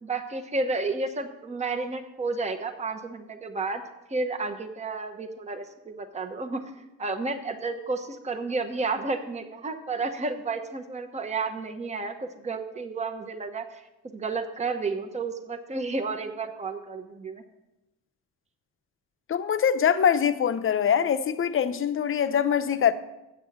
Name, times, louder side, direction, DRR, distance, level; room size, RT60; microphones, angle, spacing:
voice 1, 0.0-3.8 4.1-6.6 7.0-17.4, right 3 dB, 20° right, 0.9 m, -31 dB
voice 2, 19.3-22.9, left 8 dB, 45° left, 0.7 m, -23 dB
8.2 x 6.2 x 7.2 m
cardioid pair, 90°, 30 cm